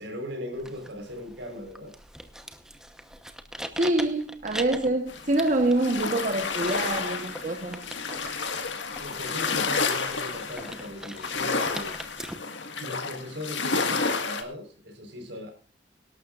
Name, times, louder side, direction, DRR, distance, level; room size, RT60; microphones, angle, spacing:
voice 1, 0.0-1.9 9.0-12.0 12.8-15.5, left 1 dB, 80° right, 4 dB, 4.3 m, -38 dB
sound 1, 0.5-12.3, right 1 dB, 5° right, 0.9 m, -42 dB
voice 2, 3.8-7.9, right 2 dB, 45° right, 5 dB, 1.1 m, -26 dB
sound 2, 5.1-14.4, left 4 dB, 85° left, 1.7 m, -30 dB
24.5 x 12.0 x 2.5 m, 0.34 s
head